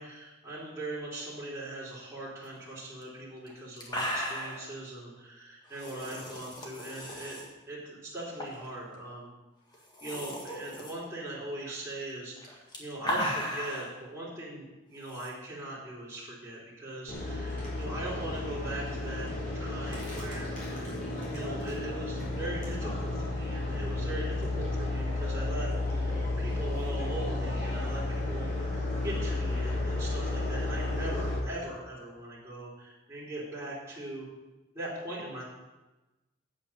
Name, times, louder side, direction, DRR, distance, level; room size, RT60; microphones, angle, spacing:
voice 1, 0.0-7.4 7.7-9.3 10.0-19.3 19.5-20.5 21.3-34.3 34.7-35.4, right 1 dB, 10° right, -8 dB, 3.0 m, -40 dB
sound 1, 3.0-3.1 3.5-3.6 3.8-4.7 5.7-7.5 8.4-8.7 9.0-9.1 9.7-10.9 12.4-13.9 15.1-15.3, equal, 20° left, 1.7 m, -35 dB
sound 2, 17.1-31.4, left 2 dB, 40° left, 4.0 m, -32 dB
9.0 x 8.3 x 5.5 m, 1.1 s
head